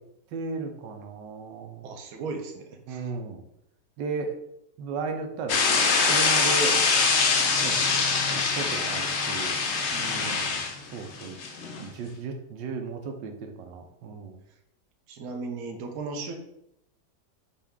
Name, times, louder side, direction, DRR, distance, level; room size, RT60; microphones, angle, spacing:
voice 1, 0.3-1.9 2.9-3.4 4.0-4.3 4.8-6.8 7.6-7.8 8.3-9.6 10.1-10.6 10.9-11.4 11.8-14.4, right 4 dB, 85° right, 4 dB, 1.3 m, -35 dB
voice 2, 1.8-3.1 9.9-10.5 15.1-16.3, right 4 dB, 65° right, 3 dB, 1.1 m, -37 dB
sound 1, 5.5-11.9, left 4 dB, 70° left, 0.6 m, -24 dB
5.5 x 2.6 x 3.5 m, 0.78 s
omnidirectional pair, 1.9 m